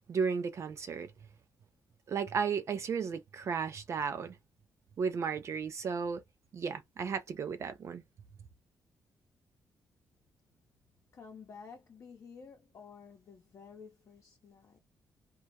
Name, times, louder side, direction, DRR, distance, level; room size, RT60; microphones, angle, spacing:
voice 1, 0.1-1.1 2.1-4.4 5.0-6.2 6.5-8.0, right 6 dB, 45° right, 0.4 m, -34 dB
voice 2, 11.1-14.8, left 5 dB, 50° left, 0.7 m, -52 dB
2.3 x 2.1 x 2.7 m
cardioid pair, 135°, 7 cm